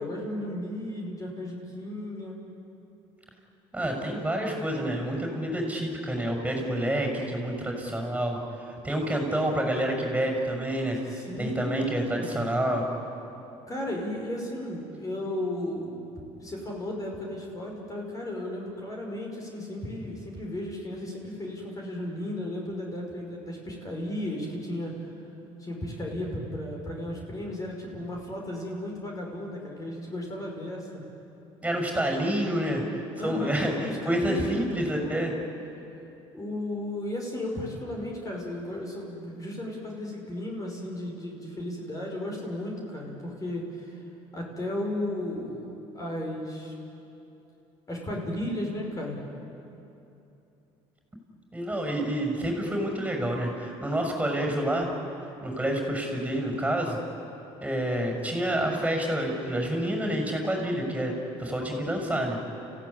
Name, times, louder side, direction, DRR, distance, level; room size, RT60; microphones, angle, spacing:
voice 1, 0.0-2.4 11.1-12.5 13.7-16.0 16.4-25.1 25.6-31.0 33.2-35.3 36.3-44.0 44.3-46.7 47.9-49.2 53.3-53.4, left 1 dB, 30° left, -1 dB, 5.5 m, -34 dB
voice 2, 3.7-8.4 8.8-11.0 11.4-12.9 31.6-35.3 51.5-54.9 55.4-57.0 57.6-61.1 61.4-62.4, right 1 dB, 10° right, 2 dB, 6.4 m, -28 dB
30.0 x 16.0 x 9.9 m, 2.8 s
supercardioid pair, 85°, 12 cm